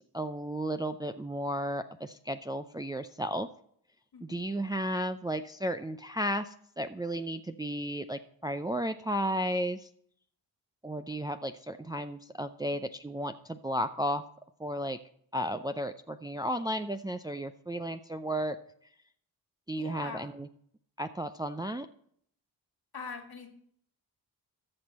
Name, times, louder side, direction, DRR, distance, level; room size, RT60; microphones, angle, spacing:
voice 1, 0.1-3.5 4.2-9.9 10.8-14.2 14.6-15.0 15.3-18.6 19.7-20.5 21.0-21.9, equal, 10° right, 8 dB, 0.5 m, -33 dB
voice 2, 19.8-20.3 22.9-23.5, left 5 dB, 55° left, 5 dB, 2.0 m, -43 dB
14.0 x 6.1 x 4.2 m, 0.66 s
supercardioid pair, 40°, 45 cm